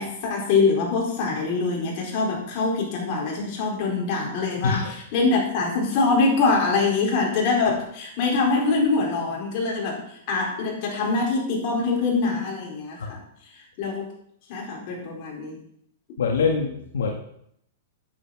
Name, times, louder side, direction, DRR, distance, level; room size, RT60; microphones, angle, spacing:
voice 1, 0.0-10.0 10.3-13.2 13.5-14.1 14.5-15.6, left 4 dB, 45° left, -1 dB, 4.6 m, -24 dB
voice 2, 16.2-17.1, left 5 dB, 85° left, 2 dB, 1.6 m, -24 dB
9.8 x 8.4 x 6.0 m, 0.72 s
hypercardioid pair, 145°, 0 cm